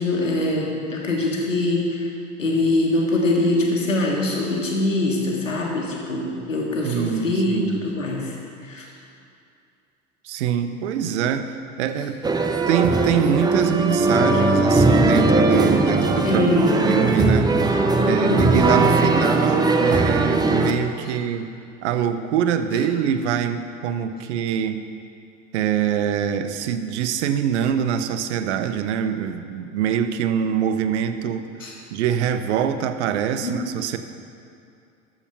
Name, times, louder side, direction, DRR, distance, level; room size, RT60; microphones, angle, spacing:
voice 1, 0.0-2.1 2.4-8.9 16.2-16.9 18.0-18.6 21.0-21.1 31.6-31.7 33.4-33.6, left 2 dB, 85° left, -1 dB, 1.5 m, -23 dB
voice 2, 6.8-7.8 10.2-11.5 11.8-12.2 12.7-16.4 16.8-21.5 21.8-24.8 25.5-31.5 31.9-34.0, right 8 dB, 65° right, 9 dB, 0.7 m, -24 dB
sound 1, 12.2-20.7, right 2 dB, 10° right, 0.6 m, -19 dB
13.5 x 4.9 x 5.6 m, 2.5 s
figure-of-eight pair, 65°, 38 cm